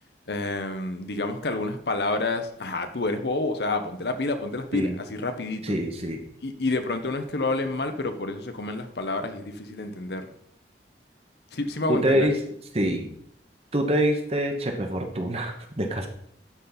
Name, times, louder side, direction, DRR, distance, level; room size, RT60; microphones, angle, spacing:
voice 1, 0.3-5.7 6.4-10.3 11.5-12.3, left 2 dB, 65° left, 7 dB, 0.9 m, -29 dB
voice 2, 5.6-6.2 11.9-12.4 12.7-13.1 13.7-16.1, right 1 dB, 35° right, 4 dB, 1.1 m, -25 dB
12.0 x 4.2 x 4.0 m, 0.71 s
head